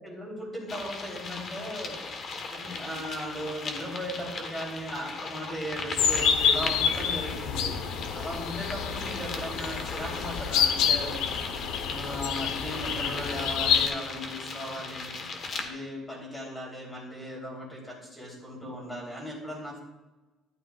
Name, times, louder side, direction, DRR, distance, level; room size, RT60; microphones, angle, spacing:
voice 1, 0.0-2.0 2.5-7.7 8.1-11.2 11.8-19.8, equal, 10° left, -2 dB, 3.4 m, -37 dB
sound 1, 0.7-15.7, left 4 dB, 35° left, 1.3 m, -38 dB
sound 2, 6.0-13.9, left 7 dB, 75° left, 0.9 m, -28 dB
12.0 x 11.5 x 2.4 m, 1.1 s
cardioid pair, 165°, 0 cm